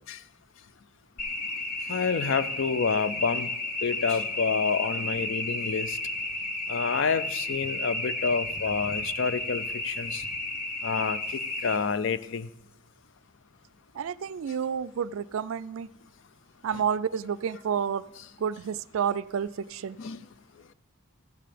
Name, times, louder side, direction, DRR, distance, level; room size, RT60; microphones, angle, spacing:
sound 1, 1.2-11.8, left 2 dB, 40° left, 1.1 m, -32 dB
voice 1, 1.9-3.5 3.8-6.0 6.7-10.2 10.8-12.5 16.7-16.8 20.0-20.2, left 5 dB, 60° left, 15 dB, 0.4 m, -28 dB
voice 2, 13.9-15.9 16.6-18.0 18.4-20.0, right 7 dB, 75° right, 16 dB, 0.3 m, -30 dB
14.0 x 7.6 x 5.1 m, 0.87 s
head